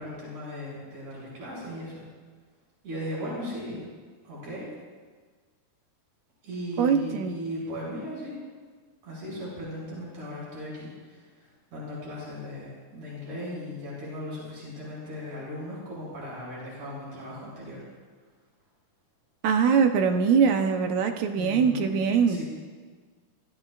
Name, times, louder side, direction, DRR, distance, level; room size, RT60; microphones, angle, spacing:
voice 1, 0.0-2.0 2.8-3.8 4.2-4.7 6.4-8.4 9.0-10.9 11.7-17.8 21.4-22.0 22.3-22.4, left 1 dB, 50° right, -7 dB, 6.8 m, -37 dB
voice 2, 6.8-7.4 19.4-22.4, right 6 dB, 70° right, 5 dB, 2.0 m, -22 dB
26.0 x 15.0 x 2.5 m, 1.5 s
omnidirectional pair, 4.0 m